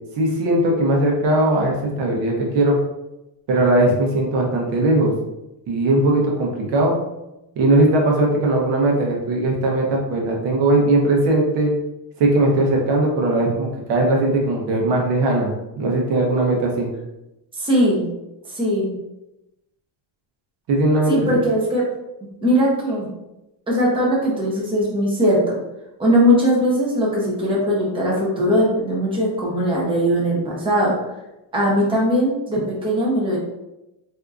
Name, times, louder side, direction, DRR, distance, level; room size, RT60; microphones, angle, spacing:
voice 1, 0.2-2.8 3.5-5.1 5.7-7.0 7.6-11.7 12.2-15.5 15.8-16.9 20.7-21.4, right 2 dB, 70° right, 0 dB, 0.9 m, -19 dB
voice 2, 17.5-18.0 18.5-18.9 21.1-21.9 22.4-23.1 23.7-25.6 26.0-30.9 31.5-33.4, equal, 10° right, -5 dB, 0.8 m, -19 dB
3.5 x 2.8 x 2.4 m, 0.93 s
cardioid pair, 145°, 44 cm